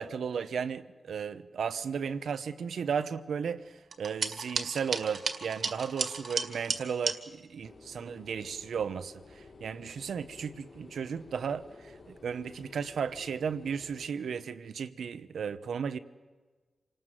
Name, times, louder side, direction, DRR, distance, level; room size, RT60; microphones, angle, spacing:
voice 1, 0.0-16.0, right 6 dB, 90° right, 0.9 m, -35 dB
sound 1, 3.9-7.2, right 4 dB, 60° right, 1.9 m, -33 dB
sound 2, 7.6-14.1, left 3 dB, 65° left, 5.6 m, -53 dB
27.0 x 19.0 x 7.7 m
wide cardioid pair, 95°, 0 cm